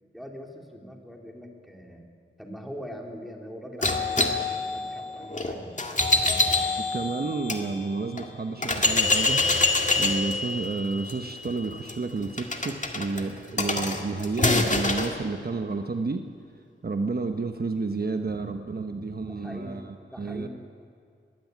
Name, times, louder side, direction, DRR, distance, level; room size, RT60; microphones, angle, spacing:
voice 1, 0.1-2.0 2.4-6.9 19.2-19.8 20.1-20.5, equal, ahead, 1 dB, 3.1 m, -42 dB
sound 1, 3.8-7.6 8.2-8.3 8.6-15.1, left 2 dB, 35° left, 2.0 m, -26 dB
voice 2, 6.9-9.4 10.0-16.2 16.8-20.5, right 3 dB, 50° right, 6 dB, 1.0 m, -30 dB
21.0 x 15.5 x 9.4 m, 2.3 s
wide cardioid pair, 100°, 21 cm